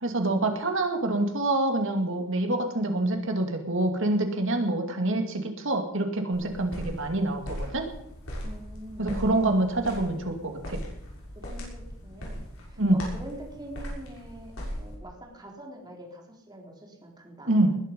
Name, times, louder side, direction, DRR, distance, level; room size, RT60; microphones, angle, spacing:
voice 1, 0.0-7.9 9.0-10.8 12.8-13.0 17.5-17.8, right 2 dB, 65° right, 5 dB, 2.5 m, -26 dB
sound 1, 6.3-15.0, equal, 70° left, 6.3 m, -39 dB
voice 2, 8.4-9.1 11.4-17.5, right 1 dB, 20° right, 0 dB, 3.9 m, -45 dB
20.0 x 11.5 x 5.4 m, 0.73 s
head